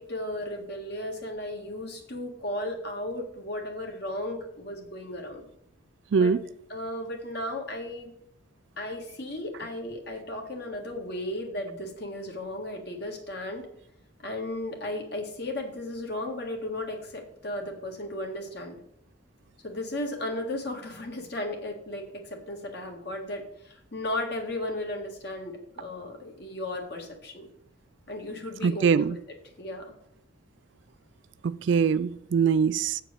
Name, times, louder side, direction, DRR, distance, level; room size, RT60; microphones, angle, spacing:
voice 1, 0.0-5.5 6.1-6.3 6.7-8.1 8.8-13.7 14.2-18.8 19.6-27.5 28.1-29.1 29.6-29.9, left 1 dB, 55° left, 1.7 m, -35 dB
voice 2, 28.6-29.1 31.4-33.0, right 6 dB, 65° right, 0.3 m, -23 dB
8.4 x 4.4 x 6.7 m
head